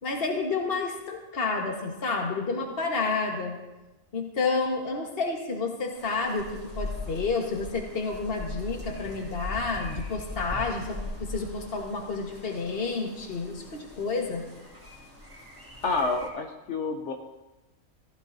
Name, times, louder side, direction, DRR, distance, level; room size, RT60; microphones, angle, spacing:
voice 1, 0.0-3.6 4.1-14.4, left 4 dB, 45° left, 1 dB, 1.7 m, -30 dB
sound 1, 5.9-16.3, left 2 dB, 10° right, 2.8 m, -40 dB
voice 2, 15.8-17.1, left 3 dB, 65° left, 3 dB, 1.1 m, -28 dB
15.0 x 14.5 x 2.7 m, 1.1 s
omnidirectional pair, 1.4 m